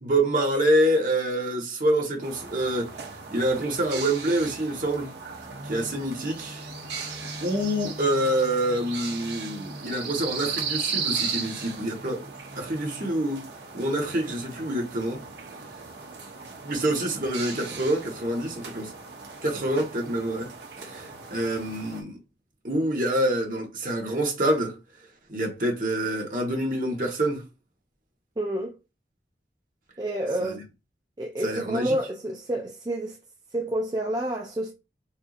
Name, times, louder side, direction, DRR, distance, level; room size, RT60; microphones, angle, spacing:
voice 1, 0.0-5.1 5.6-6.7 6.9-7.1 7.4-12.2 12.6-13.4 13.7-15.2 16.6-18.9 19.4-20.5 20.8-22.2 22.6-24.8 25.3-27.4 30.4-30.6 31.4-31.9, right 1 dB, 50° right, 1.2 m, -26 dB
sound 1, 2.2-22.0, right 5 dB, 75° right, 0.8 m, -37 dB
voice 2, 28.4-28.7 30.0-30.6 31.2-33.2 33.5-34.7, right 1 dB, 25° right, 0.4 m, -29 dB
4.4 x 2.6 x 2.4 m
head